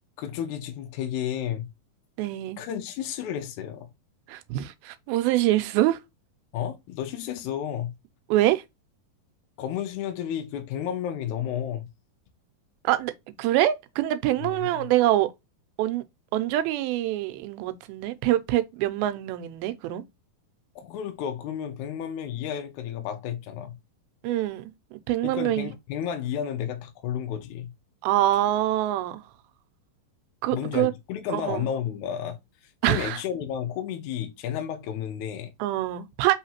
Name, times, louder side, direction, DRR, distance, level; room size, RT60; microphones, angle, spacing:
voice 1, 0.2-1.7 2.6-3.9 6.5-8.0 9.6-11.9 14.4-14.9 20.7-23.8 25.2-27.7 30.5-32.4 32.6-35.5, left 9 dB, 80° left, 1.7 m, -32 dB
voice 2, 2.2-2.6 4.3-6.0 8.3-8.6 12.8-13.1 13.4-15.3 15.8-16.0 16.3-20.0 24.2-25.7 28.0-29.2 30.4-30.9 31.3-31.7 32.8-33.2 35.6-36.3, right 14 dB, 85° right, 2.4 m, -25 dB
5.7 x 3.1 x 2.8 m
omnidirectional pair, 4.3 m